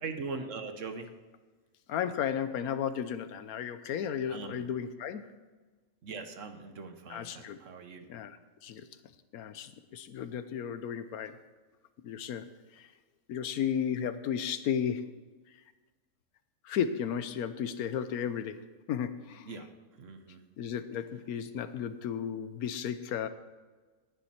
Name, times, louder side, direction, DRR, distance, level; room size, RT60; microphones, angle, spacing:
voice 1, 0.0-1.1 4.3-4.6 6.0-8.1 19.4-19.7 20.0-20.4, right 4 dB, 60° right, 7 dB, 1.3 m, -41 dB
voice 2, 1.9-5.3 7.1-7.6 8.1-8.4 8.6-8.9 9.3-11.4 12.0-12.5 12.8-12.9 13.3-15.1 16.6-19.6 20.6-23.3, left 8 dB, 85° left, 12 dB, 1.2 m, -34 dB
18.5 x 7.3 x 4.3 m, 1.3 s
omnidirectional pair, 1.5 m